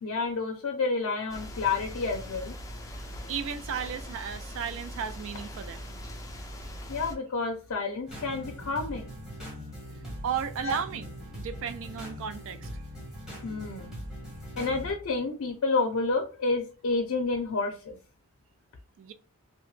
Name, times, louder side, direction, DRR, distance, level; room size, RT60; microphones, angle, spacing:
voice 1, 0.0-2.5 6.9-9.1 10.6-10.7 13.4-14.0 14.6-18.0, left 3 dB, 65° left, 0.5 m, -29 dB
sound 1, 1.3-7.1, equal, 15° left, 0.4 m, -41 dB
voice 2, 3.3-5.9 10.2-11.1 11.4-12.7 19.0-19.1, right 7 dB, 60° right, 0.3 m, -34 dB
sound 2, 8.1-14.9, equal, 5° right, 1.1 m, -41 dB
2.8 x 2.1 x 3.1 m
head